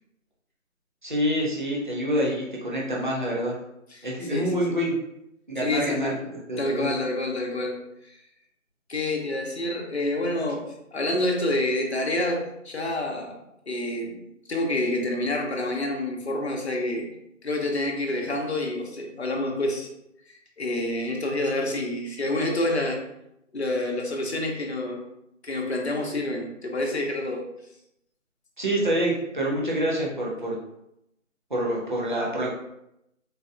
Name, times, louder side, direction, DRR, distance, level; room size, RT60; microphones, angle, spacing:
voice 1, 1.0-3.5 4.0-4.9 5.5-6.1 6.5-6.9 28.6-30.6 31.5-32.5, equal, 35° right, -4 dB, 0.7 m, -26 dB
voice 2, 3.9-4.5 5.6-6.1 6.6-7.8 8.0-8.2 8.9-10.6 10.9-13.4 13.7-14.2 14.5-17.1 17.4-19.9 20.6-23.0 23.5-25.0 25.4-27.4, left 1 dB, 55° left, 1 dB, 0.8 m, -28 dB
4.0 x 2.2 x 2.5 m, 0.81 s
figure-of-eight pair, 175°, 40 cm